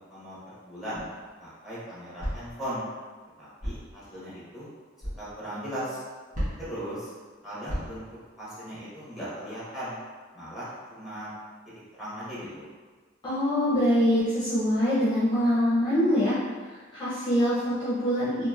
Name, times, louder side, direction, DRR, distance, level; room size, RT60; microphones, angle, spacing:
voice 1, 0.1-1.0 1.4-2.8 3.4-4.7 5.2-6.0 6.6-7.1 7.4-8.0 8.4-10.0 10.3-11.3 12.0-12.7, equal, ahead, -10 dB, 1.0 m, -38 dB
sound 1, 0.9-1.3 2.2-2.6 3.6-3.9 5.0-5.2 6.3-6.8 7.7-8.1, equal, 40° right, 1.0 m, -34 dB
voice 2, 13.2-16.4 16.9-18.5, equal, 20° left, -12 dB, 0.7 m, -24 dB
2.9 x 2.8 x 2.3 m, 1.4 s
head